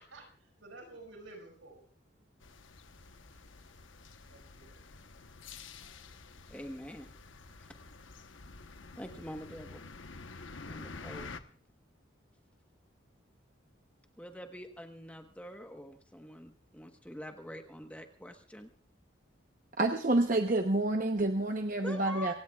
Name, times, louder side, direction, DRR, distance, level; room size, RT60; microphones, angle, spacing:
voice 1, 0.0-1.8 4.3-4.8 5.8-5.9 21.7-22.3, right 2 dB, 80° right, 3 dB, 5.6 m, -51 dB
sound 1, 2.4-11.4, left 4 dB, 80° left, 1.1 m, -49 dB
voice 2, 6.5-7.1 7.6-7.7 9.0-9.9 10.7-11.4 14.2-18.7 21.8-22.3, equal, 5° left, 5 dB, 1.2 m, -45 dB
voice 3, 19.8-22.3, right 2 dB, 40° right, 5 dB, 0.9 m, -28 dB
27.0 x 17.0 x 2.4 m, 0.42 s
head